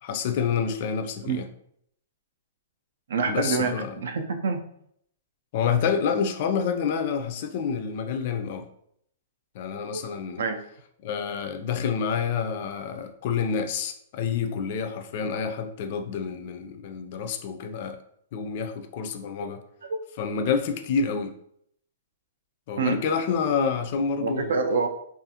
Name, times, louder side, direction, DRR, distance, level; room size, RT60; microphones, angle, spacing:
voice 1, 0.0-1.5 3.3-3.9 5.5-8.7 9.5-10.4 11.0-18.0 18.3-19.6 20.2-21.3 22.7-24.6, left 6 dB, 40° left, 7 dB, 0.3 m, -28 dB
voice 2, 3.1-4.6 9.9-10.0 10.4-10.6 22.8-23.0 24.2-24.9, right 4 dB, 75° right, 6 dB, 0.4 m, -26 dB
2.5 x 2.3 x 2.7 m, 0.69 s
hypercardioid pair, 165°, 0 cm